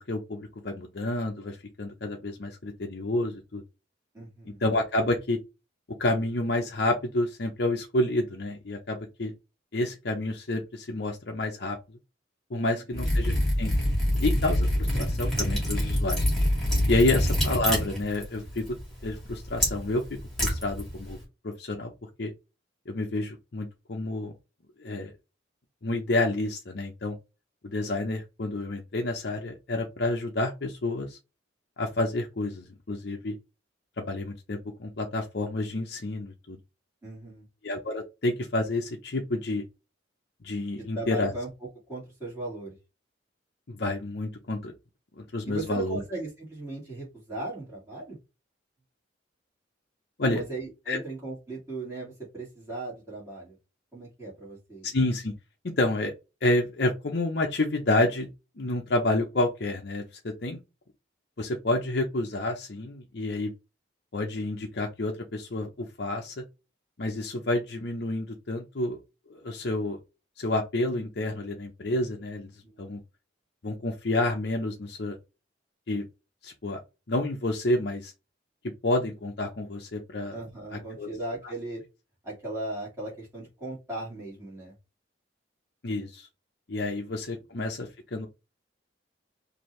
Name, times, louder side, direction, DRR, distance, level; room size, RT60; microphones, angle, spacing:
voice 1, 0.1-3.6 4.6-5.4 5.9-9.3 9.7-11.8 12.5-13.7 14.2-16.2 16.9-18.6 19.0-20.0 20.4-21.2 21.4-21.9 22.2-22.3 22.9-24.3 24.8-25.1 25.8-27.2 27.6-31.2 31.8-33.4 34.0-36.6 37.6-39.6 40.4-41.3 43.7-44.7 45.2-46.0 50.2-50.4 50.9-51.0 54.8-55.3 55.6-56.1 56.4-58.3 58.6-60.6 61.4-63.5 64.1-66.4 67.0-69.0 69.3-70.0 70.4-72.5 72.8-73.0 73.6-75.2 75.9-76.1 76.4-76.8 77.1-78.1 78.8-80.4 80.7-81.1 85.8-86.3 86.7-88.3, left 2 dB, 55° left, 0.7 m, -29 dB
voice 2, 4.1-4.6 12.5-13.0 37.0-37.5 40.9-41.5 41.9-42.8 45.5-48.2 50.2-53.6 53.9-54.9 80.3-81.8 82.2-84.7, right 2 dB, 15° right, 2.2 m, -37 dB
Liquid, 12.9-21.2, equal, ahead, 2.1 m, -27 dB
4.3 x 2.7 x 3.2 m
head